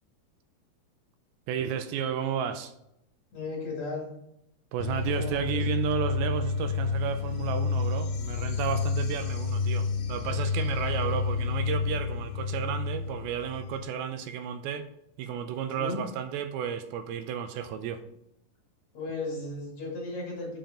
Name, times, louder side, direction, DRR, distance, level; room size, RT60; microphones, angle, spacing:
voice 1, 1.5-2.7 4.7-14.9 15.2-18.0, right 8 dB, 85° right, 9 dB, 2.4 m, -32 dB
voice 2, 3.3-4.1 5.1-5.6 15.8-16.0 18.9-20.6, left 2 dB, 50° left, -1 dB, 3.1 m, -35 dB
sound 1, 4.8-13.9, left 5 dB, 85° left, 2.8 m, -30 dB
7.1 x 5.7 x 5.0 m, 0.78 s
omnidirectional pair, 4.4 m